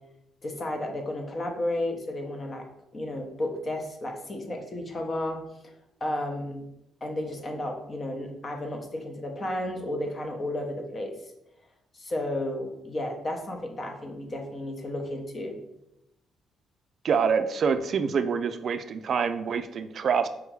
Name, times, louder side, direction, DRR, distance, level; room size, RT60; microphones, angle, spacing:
voice 1, 0.4-2.7 2.9-5.7 6.0-6.7 7.0-11.1 11.9-15.6, left 1 dB, 35° left, 3 dB, 0.8 m, -33 dB
voice 2, 17.0-20.3, right 6 dB, 55° right, 9 dB, 0.3 m, -26 dB
5.0 x 3.3 x 3.1 m, 0.85 s
cardioid pair, 90°, 0 cm